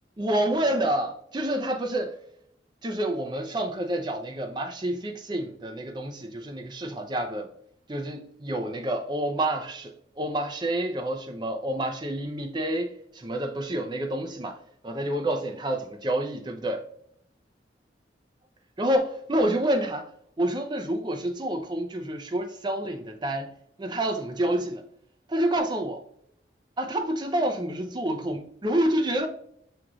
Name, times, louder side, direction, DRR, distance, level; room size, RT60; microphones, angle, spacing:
voice 1, 0.2-2.2 2.8-7.5 7.9-14.6 14.8-16.9 18.8-20.1 20.4-23.5 23.8-24.8 25.3-26.0 26.8-29.3, right 1 dB, 25° right, 0.6 m, -28 dB
6.3 x 2.4 x 3.0 m
head